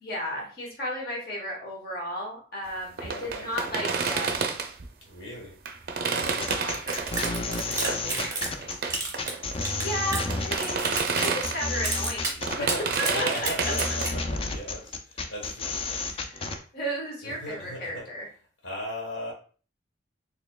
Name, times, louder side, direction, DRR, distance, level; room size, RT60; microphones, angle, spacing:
voice 1, 0.0-4.4 6.2-7.6 9.8-10.9 11.2-12.6 13.0-13.7 16.0-18.3, equal, 50° left, -2 dB, 1.2 m, -34 dB
voice 2, 3.0-3.8 5.0-5.6 6.0-6.4 7.2-8.8 12.6-16.0 17.2-18.1 18.6-19.3, equal, 85° left, -1 dB, 1.2 m, -38 dB
sound 1, 3.0-4.9 5.7-11.8 12.2-14.1, right 5 dB, 50° right, 0.4 m, -31 dB
sound 2, 6.4-16.6, left 3 dB, 30° left, 0.3 m, -32 dB
sound 3, 6.9-8.6 8.9-10.3 10.6-11.5 11.8-12.3 12.7-14.1, right 3 dB, 15° right, 0.9 m, -31 dB
4.2 x 3.2 x 2.3 m, 0.40 s
head